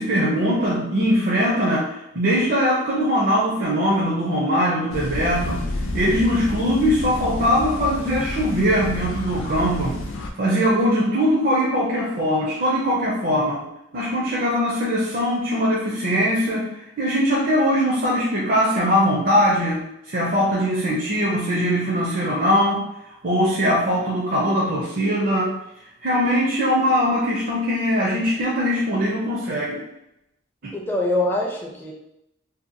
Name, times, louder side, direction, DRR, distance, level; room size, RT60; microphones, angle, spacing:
voice 1, 0.0-5.6 5.9-10.0 10.4-13.6 13.9-22.9 23.2-25.6 26.0-29.8 30.6-30.7, equal, 45° right, -4 dB, 0.5 m, -21 dB
sound 1, 4.9-10.3, left 2 dB, 80° left, 0.4 m, -30 dB
voice 2, 30.7-31.9, left 2 dB, 10° left, -1 dB, 0.4 m, -24 dB
2.7 x 2.2 x 2.5 m, 0.84 s
head